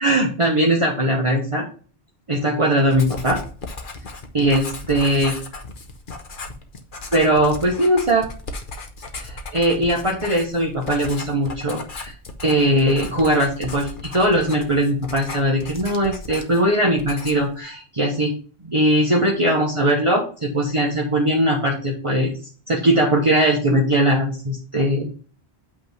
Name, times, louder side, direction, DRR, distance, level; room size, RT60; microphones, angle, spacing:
voice 1, 0.0-1.7 2.3-3.4 4.3-5.3 7.1-8.2 9.2-12.1 12.4-18.3 18.6-22.3 22.7-25.1, right 1 dB, 30° right, -1 dB, 1.2 m, -20 dB
Writing, 2.9-16.7 17.0-17.5, left 3 dB, 55° left, 1.2 m, -36 dB
8.7 x 3.6 x 5.5 m, 0.40 s
omnidirectional pair, 1.1 m